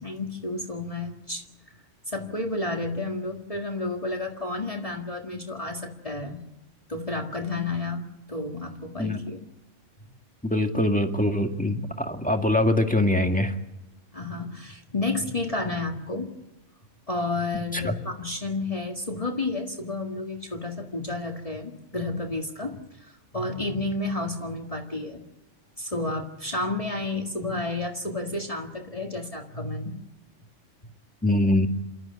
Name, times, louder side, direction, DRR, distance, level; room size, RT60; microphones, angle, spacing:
voice 1, 0.0-1.4 2.1-6.4 6.9-9.4 14.1-16.3 17.1-25.2 25.8-30.0, left 2 dB, 30° left, 2 dB, 2.0 m, -31 dB
voice 2, 10.4-13.5 17.7-17.9 31.2-31.7, left 1 dB, 5° left, 5 dB, 2.0 m, -23 dB
28.0 x 13.0 x 9.7 m, 1.0 s
omnidirectional pair, 1.3 m